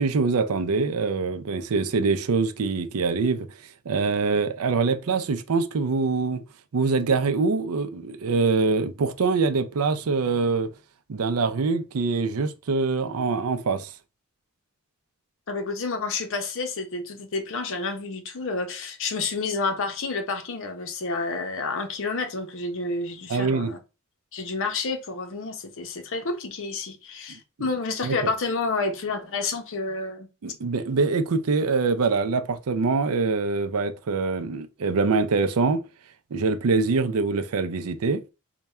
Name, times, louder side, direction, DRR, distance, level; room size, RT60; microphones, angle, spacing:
voice 1, 0.0-3.5 3.9-6.4 6.7-10.7 11.1-13.9 23.3-23.7 27.3-27.4 28.0-28.2 30.4-35.8 36.3-38.2, right 4 dB, 80° right, 0.5 m, -24 dB
voice 2, 15.5-23.8 24.3-30.3, left 3 dB, 60° left, 0.7 m, -29 dB
3.4 x 2.3 x 4.2 m
head